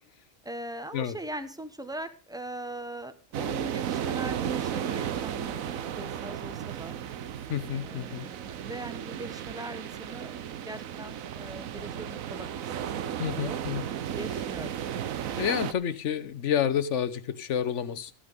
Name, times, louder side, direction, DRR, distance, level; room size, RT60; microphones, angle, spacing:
voice 1, 0.4-7.0 7.7-12.5 13.0-13.6 14.1-14.7, right 1 dB, 5° right, 10 dB, 0.8 m, -41 dB
sound 1, 3.3-15.7, right 9 dB, 85° right, 1.2 m, -34 dB
voice 2, 7.5-8.3 13.2-13.8 15.4-18.1, left 8 dB, 65° left, 15 dB, 1.1 m, -29 dB
14.0 x 8.8 x 5.2 m, 0.38 s
omnidirectional pair, 1.4 m